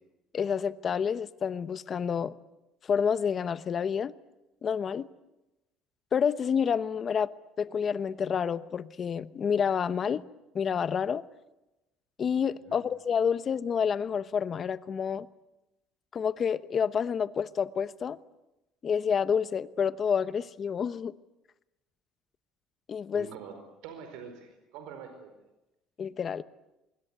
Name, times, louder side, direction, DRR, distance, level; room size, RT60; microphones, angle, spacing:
voice 1, 0.3-2.3 2.9-4.1 4.6-5.1 6.1-7.3 7.6-10.2 10.5-11.2 12.2-15.3 16.1-18.2 18.8-21.1 22.9-23.3 26.0-26.4, left 7 dB, 35° left, 0.9 m, -29 dB
voice 2, 23.1-25.3, right 6 dB, 85° right, 4.6 m, -45 dB
25.5 x 22.5 x 9.5 m
cardioid pair, 135°, 0 cm